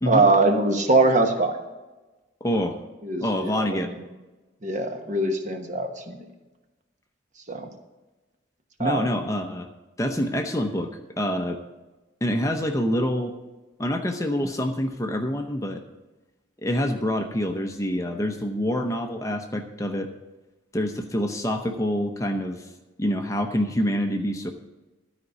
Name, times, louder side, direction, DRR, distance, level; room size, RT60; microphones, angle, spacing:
voice 1, 0.1-1.6 3.0-3.9 4.6-6.2 7.5-7.7 8.8-9.1, right 2 dB, 40° right, 5 dB, 1.2 m, -22 dB
voice 2, 2.4-2.8 3.2-3.9 8.8-9.7 10.0-11.6 12.2-13.3 13.8-15.8 16.6-20.1 20.7-22.7 23.0-24.5, equal, 15° left, 5 dB, 0.7 m, -26 dB
12.5 x 5.1 x 8.1 m, 1.1 s
head